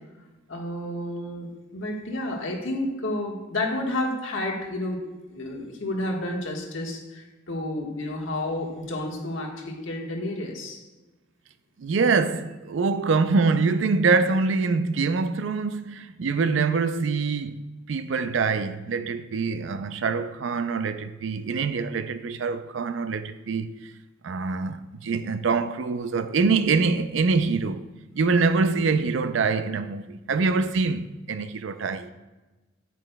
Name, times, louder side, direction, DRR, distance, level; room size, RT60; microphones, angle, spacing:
voice 1, 0.5-5.0 5.3-10.8, left 1 dB, 85° left, 1.4 m, -31 dB
voice 2, 11.8-23.9 24.2-27.9 28.1-32.1, right 4 dB, 75° right, 0.4 m, -25 dB
8.6 x 8.4 x 2.2 m
head